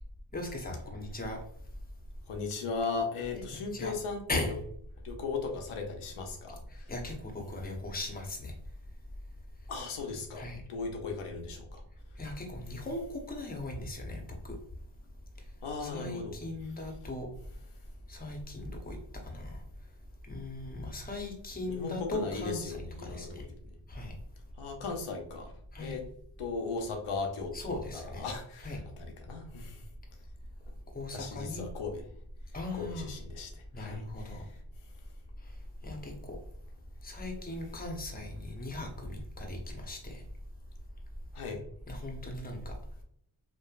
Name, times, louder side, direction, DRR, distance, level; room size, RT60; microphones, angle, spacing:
voice 1, 0.3-1.4 3.3-3.9 4.3-4.5 6.7-8.5 10.3-10.6 12.2-14.6 15.8-17.3 18.1-19.0 19.2-19.6 20.2-23.5 23.9-24.1 25.7-26.0 27.5-28.3 28.6-28.8 30.9-31.6 32.5-33.1 33.7-34.5 35.4-35.5 35.8-36.4 37.0-40.2 41.9-42.7, left 2 dB, 20° left, 2 dB, 0.7 m, -38 dB
voice 2, 2.3-4.5 5.0-6.6 9.7-11.8 15.6-16.4 21.6-23.5 24.6-26.0 26.4-29.8 31.1-32.0 32.7-33.5 33.8-34.4 41.3-41.6, left 4 dB, 90° left, 3 dB, 0.7 m, -37 dB
3.0 x 2.2 x 2.4 m, 0.65 s
cardioid pair, 60°, 49 cm